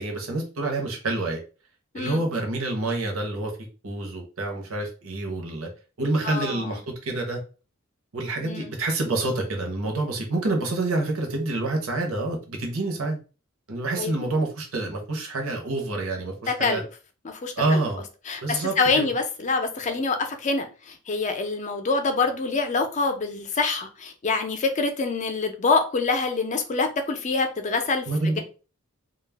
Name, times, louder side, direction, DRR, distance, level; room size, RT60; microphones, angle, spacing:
voice 1, 0.0-1.4 1.9-3.5 3.8-5.7 6.0-7.4 8.1-13.2 13.7-16.8 17.6-18.0 18.4-19.1 28.1-28.4, right 2 dB, 75° right, 2 dB, 0.7 m, -27 dB
voice 2, 6.2-6.8 8.4-8.7 14.0-14.1 16.5-16.9 17.2-17.8 18.3-28.4, left 4 dB, 35° left, 5 dB, 0.4 m, -26 dB
2.3 x 2.0 x 3.2 m, 0.34 s
head